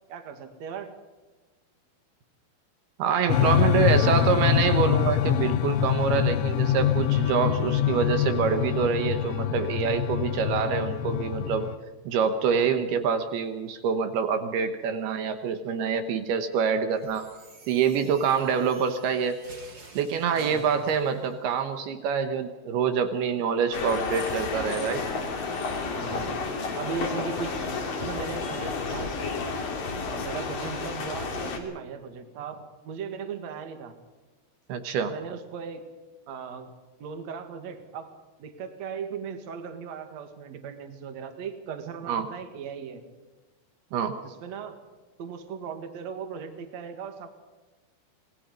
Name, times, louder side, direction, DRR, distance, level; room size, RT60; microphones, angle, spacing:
voice 1, 0.1-0.9 3.3-4.3 12.5-12.8 20.3-20.8 25.9-26.5 26.8-27.7 28.0-29.1 30.1-34.0 35.1-35.8 36.3-36.7 37.0-38.1 38.4-43.0 44.2-44.8 45.2-47.3, right 6 dB, 55° right, 7 dB, 2.1 m, -38 dB
voice 2, 3.0-11.7 12.1-17.3 17.7-19.4 19.9-25.1 34.7-35.1 42.1-42.3 43.9-44.2, right 6 dB, 70° right, 8 dB, 2.6 m, -26 dB
sound 1, 3.3-11.7, left 10 dB, 75° left, 3.1 m, -25 dB
sound 2, 16.9-21.4, right 3 dB, 25° right, 2.6 m, -51 dB
sound 3, 23.7-31.6, left 4 dB, 50° left, 3.9 m, -31 dB
27.5 x 20.0 x 5.3 m, 1.2 s
omnidirectional pair, 5.8 m